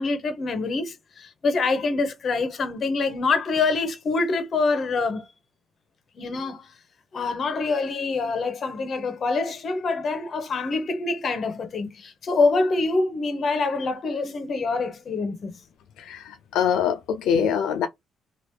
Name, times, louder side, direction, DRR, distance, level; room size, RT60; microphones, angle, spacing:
voice 1, 0.0-5.3 6.2-6.7 7.1-15.6, left 3 dB, 50° left, 0.9 m, -25 dB
voice 2, 16.0-17.9, left 8 dB, 85° left, 0.4 m, -24 dB
2.9 x 2.4 x 3.3 m
cardioid pair, 90°, 0 cm